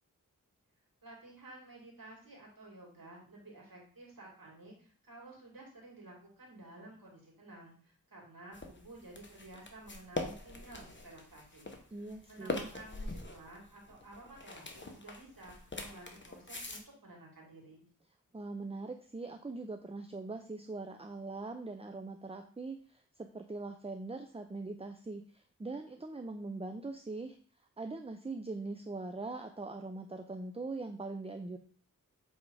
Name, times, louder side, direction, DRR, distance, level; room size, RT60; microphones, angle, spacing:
voice 1, 1.0-12.0 12.3-17.9, right 2 dB, 85° right, -2 dB, 2.7 m, -53 dB
sound 1, 8.5-16.8, left 2 dB, 35° left, 1.2 m, -43 dB
voice 2, 11.9-12.7 18.3-27.4 27.8-31.6, right 3 dB, 20° right, 6 dB, 0.6 m, -42 dB
7.5 x 3.6 x 4.8 m, 0.44 s
wide cardioid pair, 60°, 33 cm